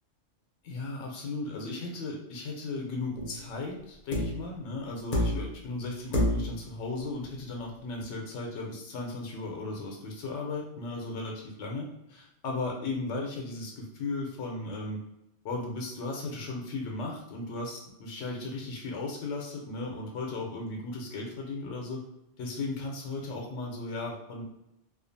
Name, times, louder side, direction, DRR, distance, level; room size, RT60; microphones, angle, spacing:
voice 1, 0.6-15.0 15.4-22.0 22.4-24.4, left 3 dB, 85° left, 0 dB, 1.0 m, -36 dB
sound 1, 3.1-3.4 4.1-4.5 5.1-5.6 6.1-6.6 8.0-8.1, left 1 dB, 50° left, 0.8 m, -28 dB
2.5 x 2.3 x 2.6 m, 0.84 s
omnidirectional pair, 1.2 m